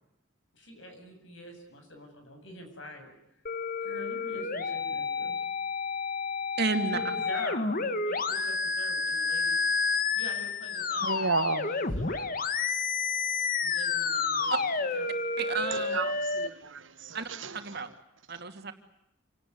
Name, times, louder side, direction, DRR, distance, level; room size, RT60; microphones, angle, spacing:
voice 1, 0.5-3.1 3.8-5.4 6.9-9.6 10.1-12.5 13.6-15.1, left 1 dB, 70° left, 7.8 m, -45 dB
sound 1, 3.5-16.5, left 4 dB, 45° left, 1.6 m, -30 dB
voice 2, 6.6-7.0 14.5-14.6 15.4-16.0 17.1-17.9 18.3-18.7, right 4 dB, 50° right, 2.6 m, -31 dB
voice 3, 11.0-11.7 12.0-12.3 15.7-17.5, right 4 dB, 70° right, 1.4 m, -33 dB
28.0 x 18.5 x 9.6 m
head